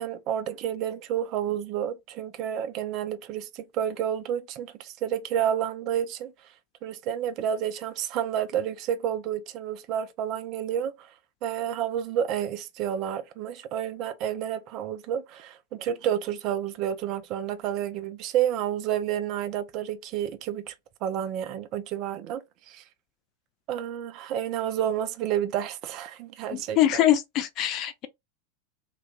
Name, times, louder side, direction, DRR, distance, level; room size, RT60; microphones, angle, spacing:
voice 1, 0.0-6.3 6.8-11.1 11.4-20.7 21.0-22.8 23.7-27.0, right 10 dB, 40° right, 0.3 m, -30 dB
voice 2, 26.5-28.1, left 12 dB, 35° left, 0.3 m, -23 dB
2.2 x 2.1 x 2.7 m
figure-of-eight pair, 90°, 0 cm